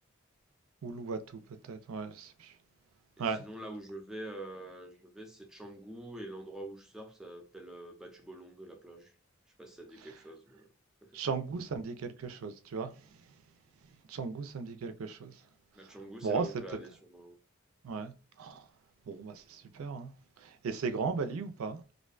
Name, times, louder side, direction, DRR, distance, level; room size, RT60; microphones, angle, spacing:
voice 1, 0.8-1.4 1.7-2.5 3.2-3.4 11.1-12.9 14.1-15.3 16.2-16.5 17.8-18.1 18.4-18.6 19.1-20.1 20.4-21.8, right 5 dB, 85° right, 0.4 m, -36 dB
voice 2, 3.2-9.1 9.6-10.7 11.0-11.2 15.7-17.4, right 1 dB, 5° right, 0.5 m, -46 dB
2.5 x 2.1 x 2.4 m
head